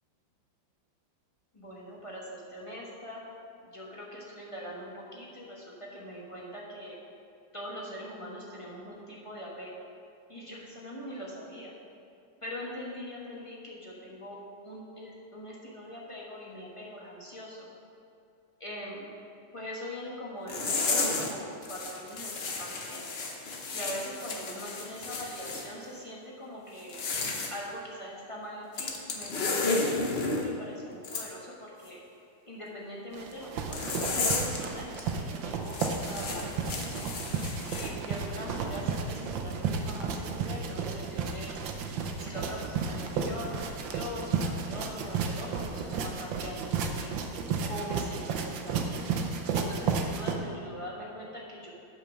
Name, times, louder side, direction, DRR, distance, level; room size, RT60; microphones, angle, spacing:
voice 1, 1.5-3.2 3.6-7.0 7.5-9.8 10.3-11.7 12.4-14.4 14.6-17.7 18.6-19.2 19.5-23.1 23.7-27.0 27.5-32.0 32.5-37.1 37.7-41.5 42.2-47.1 47.7-49.1 49.5-51.7, equal, 20° left, -5 dB, 1.0 m, -42 dB
sound 1, 20.5-21.3 21.6-25.7 26.8-27.5 28.7-30.5 31.0-31.3 33.7-34.6 34.9-35.1 35.7-37.9, left 3 dB, 85° left, 0.5 m, -32 dB
sound 2, 33.1-50.4, right 5 dB, 70° right, 1.3 m, -33 dB
8.2 x 5.9 x 6.2 m, 2.5 s
omnidirectional pair, 2.4 m